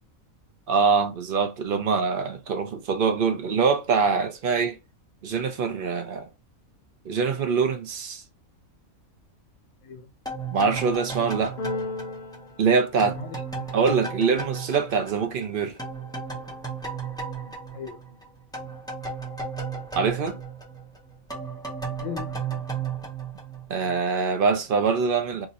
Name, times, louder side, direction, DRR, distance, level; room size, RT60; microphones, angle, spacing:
voice 1, 0.7-4.8 5.2-6.3 7.0-8.2 10.5-11.6 12.6-13.2 13.7-15.8 20.0-20.4 23.7-25.5, right 5 dB, 55° right, 0.6 m, -24 dB
sound 1, 10.2-15.5 15.8-24.0, right 5 dB, 5° left, 0.5 m, -35 dB
Keyboard (musical), 11.6-13.7, left 2 dB, 50° left, 0.6 m, -35 dB
voice 2, 13.2-13.7 17.4-18.2 22.0-23.1, left 6 dB, 65° left, 1.1 m, -40 dB
2.9 x 2.5 x 4.0 m
omnidirectional pair, 1.4 m